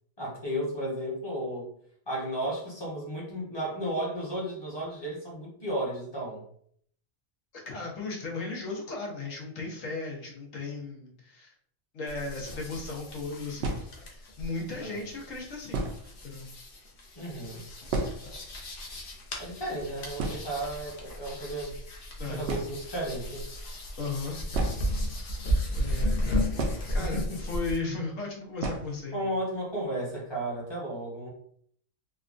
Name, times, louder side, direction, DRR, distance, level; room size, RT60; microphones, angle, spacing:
voice 1, 0.2-1.7 2.1-6.4 14.7-15.1 17.2-17.6 19.4-21.8 22.3-23.5 26.9-27.4 29.1-31.3, right 1 dB, 25° left, -4 dB, 0.8 m, -34 dB
voice 2, 7.5-11.5 11.9-15.9 16.2-16.5 22.2-22.4 24.0-24.4 25.7-26.5 26.9-29.3, left 3 dB, 85° left, -1 dB, 1.2 m, -36 dB
sound 1, 12.1-27.8, equal, 55° left, 0.8 m, -34 dB
sound 2, 12.7-12.8 13.6-14.3 15.1-15.2 15.7-16.2 16.5-16.6 16.9-17.0 17.4-18.5 18.8-18.9 19.1-19.4 19.8-19.9 20.2-21.1 22.0-22.1 22.4-23.0 24.5-25.6 26.6-27.4 27.6-27.7 28.6-29.0 29.4-29.5 29.8-29.9 30.3-30.7, right 3 dB, 65° right, 0.8 m, -34 dB
3.4 x 2.2 x 2.4 m, 0.64 s
omnidirectional pair, 1.3 m